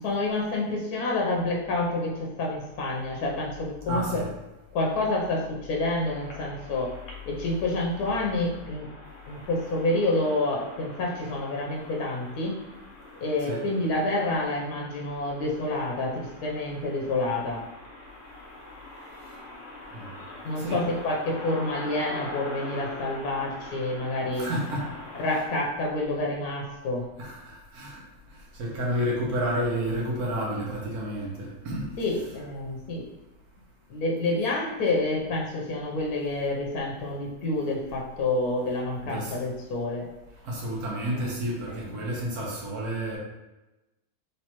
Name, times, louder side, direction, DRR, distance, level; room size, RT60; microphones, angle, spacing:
voice 1, 0.0-4.2 4.7-6.9 7.3-8.9 9.3-12.6 13.2-17.6 20.4-24.5 25.2-27.0 32.0-33.0 33.9-40.0 41.1-42.0, left 2 dB, 80° left, -2 dB, 1.2 m, -28 dB
voice 2, 3.9-4.3 13.5-13.7 19.9-20.2 20.5-20.8 24.4-24.9 25.2-25.4 27.2-28.0 28.3-32.3 39.0-39.5 40.4-43.2, equal, 90° right, -3 dB, 1.5 m, -31 dB
sound 1, 5.7-25.5, left 1 dB, 60° left, 1.2 m, -44 dB
3.3 x 3.2 x 2.9 m, 1.0 s
omnidirectional pair, 1.6 m